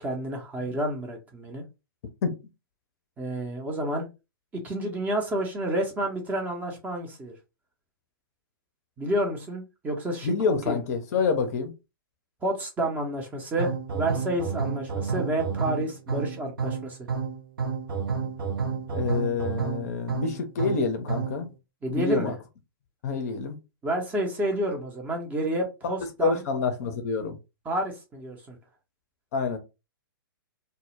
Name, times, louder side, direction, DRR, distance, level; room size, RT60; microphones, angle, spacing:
voice 1, 0.0-1.6 3.2-4.1 4.6-7.3 9.0-10.3 10.7-10.8 12.4-17.1 21.8-22.3 23.8-26.4 27.7-28.6, right 1 dB, 15° right, 0.5 m, -29 dB
voice 2, 10.2-11.7 18.9-21.5 21.9-22.3 23.0-23.6 26.2-27.4 29.3-29.6, left 5 dB, 45° left, 0.5 m, -27 dB
sound 1, 13.6-21.4, right 5 dB, 70° right, 0.5 m, -30 dB
2.0 x 2.0 x 3.0 m
figure-of-eight pair, 115°, 12 cm